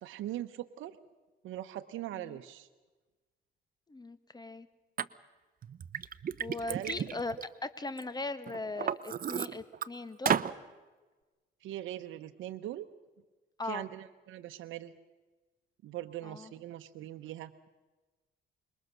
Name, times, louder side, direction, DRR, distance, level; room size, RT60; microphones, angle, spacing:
voice 1, 0.0-1.0 1.4-2.7 6.7-7.0 11.6-12.9 13.6-14.9 15.8-17.5, right 13 dB, 80° right, 7 dB, 0.9 m, -41 dB
voice 2, 3.9-4.7 6.4-7.3 7.6-10.4 13.6-13.9 16.2-16.5, left 3 dB, 20° left, 13 dB, 1.6 m, -39 dB
Liquid, 5.0-5.1 5.6-8.0 8.5-9.9 10.3-10.5, right 8 dB, 45° right, 0.8 m, -33 dB
26.5 x 22.5 x 6.7 m, 1.3 s
cardioid pair, 90°, 20 cm